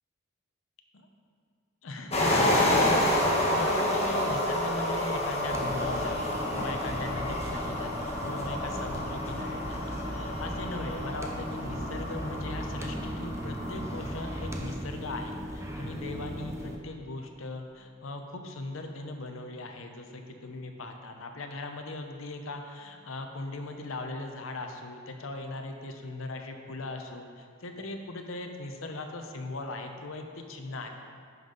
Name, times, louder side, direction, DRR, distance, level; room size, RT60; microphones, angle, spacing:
voice 1, 1.8-30.9, left 2 dB, 75° left, 4 dB, 0.7 m, -39 dB
sound 1, 2.1-14.6, left 1 dB, 30° left, 1.2 m, -29 dB
sound 2, 5.5-16.8, equal, 15° right, 0.6 m, -37 dB
10.5 x 5.4 x 3.9 m, 2.2 s
head